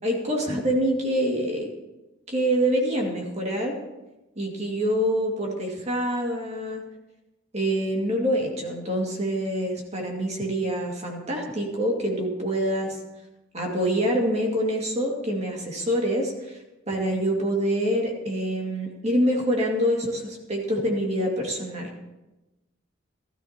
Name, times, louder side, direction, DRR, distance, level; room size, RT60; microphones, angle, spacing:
voice 1, 0.0-1.7 2.3-3.8 4.4-6.8 7.5-13.0 13.5-16.6 16.9-21.9, equal, 35° right, 0 dB, 2.1 m, -26 dB
16.5 x 13.0 x 2.9 m, 1.0 s
head